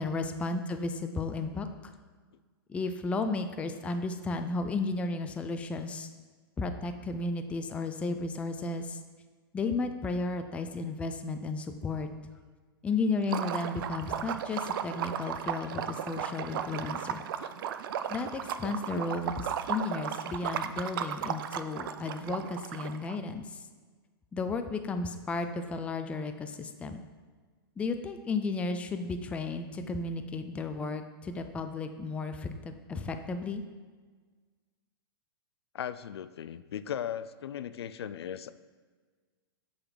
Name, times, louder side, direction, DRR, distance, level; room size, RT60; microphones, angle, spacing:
voice 1, 0.0-1.9 2.7-6.1 6.6-9.0 9.5-12.1 12.8-17.2 18.1-23.6 24.3-27.0 27.8-33.6, left 3 dB, 10° left, 7 dB, 0.3 m, -33 dB
Liquid, 13.2-23.1, right 9 dB, 60° right, 0.4 m, -35 dB
voice 2, 35.7-38.5, left 9 dB, 85° left, 14 dB, 0.4 m, -38 dB
6.5 x 4.0 x 6.2 m, 1.5 s
hypercardioid pair, 135°, 13 cm